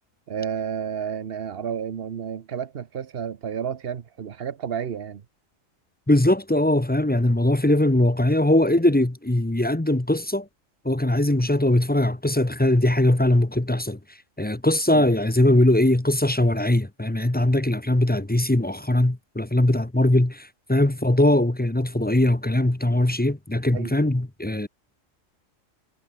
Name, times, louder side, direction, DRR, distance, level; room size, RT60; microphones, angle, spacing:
voice 1, 0.3-5.2 14.9-15.0 23.7-23.9, right 8 dB, 50° right, 1.1 m, -31 dB
voice 2, 6.1-10.5 10.8-14.0 14.4-24.7, left 1 dB, 10° left, 0.8 m, -21 dB
omnidirectional pair, 1.4 m